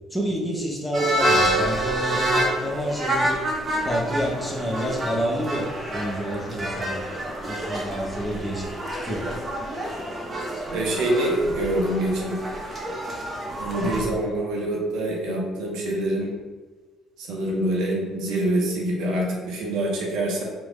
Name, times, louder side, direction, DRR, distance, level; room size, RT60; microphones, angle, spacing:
voice 1, 0.1-3.4 3.8-7.0 7.5-8.7 9.0-9.3 13.8-14.0, equal, 10° left, -3 dB, 0.9 m, -29 dB
sound 1, 0.9-14.0, right 1 dB, 30° right, 0.8 m, -28 dB
voice 2, 10.7-12.4 13.6-16.3 17.2-20.4, right 1 dB, 65° right, -2 dB, 0.7 m, -25 dB
3.1 x 2.1 x 3.7 m, 1.3 s
figure-of-eight pair, 50°, 0 cm